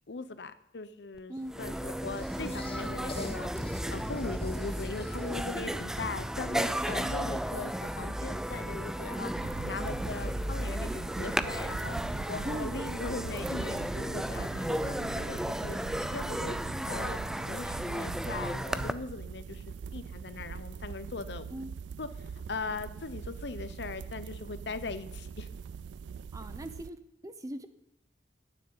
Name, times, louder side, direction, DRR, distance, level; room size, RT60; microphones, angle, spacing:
voice 1, 0.1-3.5 3.9-9.3 9.6-12.0 12.3-15.8 16.1-16.6 16.9-17.2 17.5-21.5 22.0-22.1 22.5-25.5, left 3 dB, 70° left, 13 dB, 0.8 m, -40 dB
sound 1, 1.2-1.3 1.5-18.9, equal, 5° right, 0.4 m, -34 dB
sound 2, 2.2-5.7, left 1 dB, 30° left, 1.1 m, -42 dB
voice 2, 9.3-9.7 12.4-12.8 21.5-21.7 26.3-27.7, right 1 dB, 20° right, 10 dB, 0.8 m, -40 dB
sound 3, 9.3-26.9, right 6 dB, 80° right, 0.3 m, -42 dB
9.2 x 7.5 x 8.8 m, 0.79 s
head